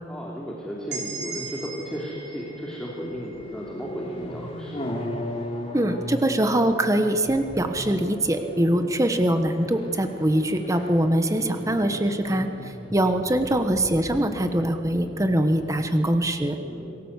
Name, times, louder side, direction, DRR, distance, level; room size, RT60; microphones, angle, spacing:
voice 1, 0.1-4.9 16.6-17.0, equal, 5° left, -4 dB, 3.1 m, -35 dB
sound 1, 0.6-16.3, left 1 dB, 35° left, 3.4 m, -38 dB
sound 2, 0.9-4.7, right 4 dB, 75° right, 7.0 m, -39 dB
voice 2, 5.7-16.6, right 1 dB, 20° right, 7 dB, 1.2 m, -23 dB
28.0 x 19.5 x 8.2 m, 3.0 s
head